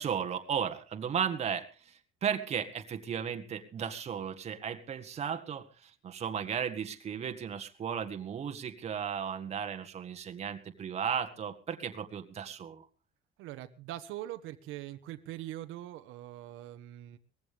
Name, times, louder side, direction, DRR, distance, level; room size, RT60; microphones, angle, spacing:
voice 1, 0.0-12.8, right 8 dB, 30° right, 7 dB, 1.7 m, -35 dB
voice 2, 13.4-17.2, right 14 dB, 80° right, 8 dB, 1.4 m, -42 dB
19.5 x 15.5 x 3.6 m, 0.34 s
cardioid pair, 175°, 20 cm